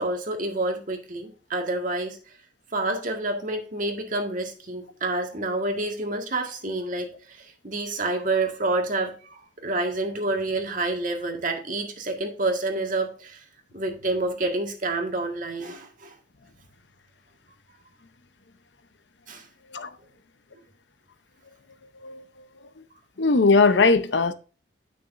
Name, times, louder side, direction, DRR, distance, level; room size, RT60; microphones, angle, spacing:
voice 1, 0.0-2.2 2.7-13.4 13.7-16.2 19.3-19.5, right 2 dB, 45° right, 1.7 m, -28 dB
voice 2, 23.2-24.3, left 3 dB, 70° left, 0.8 m, -19 dB
9.5 x 6.1 x 2.6 m
head